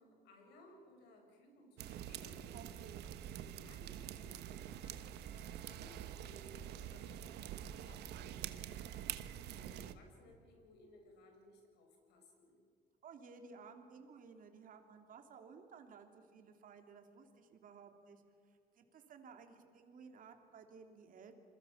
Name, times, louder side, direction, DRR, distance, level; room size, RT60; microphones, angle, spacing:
voice 1, 0.0-2.6 3.3-12.6, left 1 dB, 80° left, 3 dB, 7.2 m, -61 dB
sound 1, 1.8-9.9, right 11 dB, 80° right, 1.3 m, -46 dB
voice 2, 2.5-3.1 13.0-21.3, right 5 dB, 55° right, 5 dB, 3.2 m, -57 dB
28.0 x 22.0 x 7.4 m, 2.3 s
cardioid pair, 110°, 17 cm